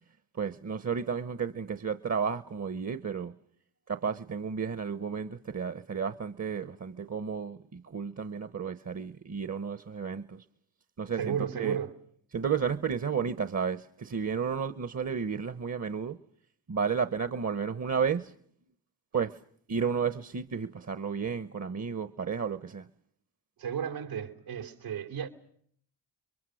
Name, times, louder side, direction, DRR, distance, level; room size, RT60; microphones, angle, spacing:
voice 1, 0.3-3.3 3.9-10.4 11.0-11.8 12.3-16.2 16.7-18.3 19.1-19.4 19.7-22.9, right 6 dB, 35° right, 1.0 m, -32 dB
voice 2, 11.2-11.9 23.6-25.3, right 8 dB, 85° right, 3.1 m, -33 dB
29.5 x 22.5 x 6.4 m
supercardioid pair, 50°, 48 cm